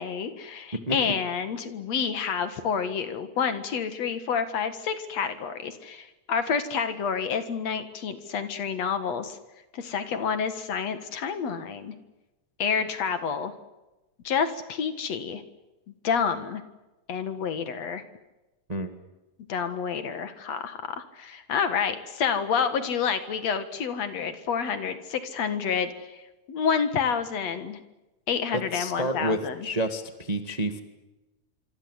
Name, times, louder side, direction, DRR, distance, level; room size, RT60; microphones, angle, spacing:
voice 1, 0.0-9.4 9.7-11.9 12.6-13.5 14.2-15.4 15.9-16.6 17.1-18.0 19.5-26.2 26.5-27.8 28.3-29.7, left 6 dB, 60° left, 10 dB, 2.7 m, -29 dB
voice 2, 28.5-30.8, right 1 dB, 20° right, 7 dB, 1.2 m, -29 dB
26.5 x 25.0 x 8.2 m, 1.1 s
omnidirectional pair, 3.5 m